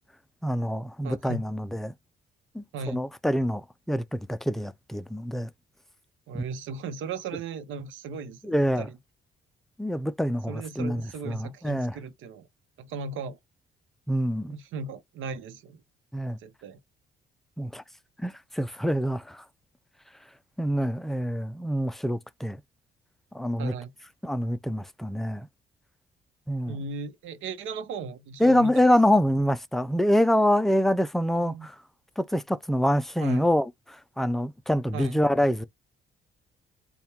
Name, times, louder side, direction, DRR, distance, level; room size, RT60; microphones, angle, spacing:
voice 1, 0.4-1.9 2.5-5.5 8.4-8.9 9.8-12.0 14.1-14.6 16.1-16.4 17.6-17.8 18.2-19.4 20.6-22.6 23.3-23.7 24.2-25.5 26.5-26.8 28.4-31.8 32.2-35.6, equal, ahead, 0.4 m, -26 dB
voice 2, 1.0-1.4 2.7-3.0 6.3-9.0 10.5-12.5 12.8-13.4 14.5-15.8 16.4-16.8 23.6-23.9 26.7-28.8 31.3-31.7 33.2-33.5 34.9-35.2, right 4 dB, 85° right, 0.9 m, -37 dB
4.3 x 2.4 x 3.5 m
cardioid pair, 90°, 20 cm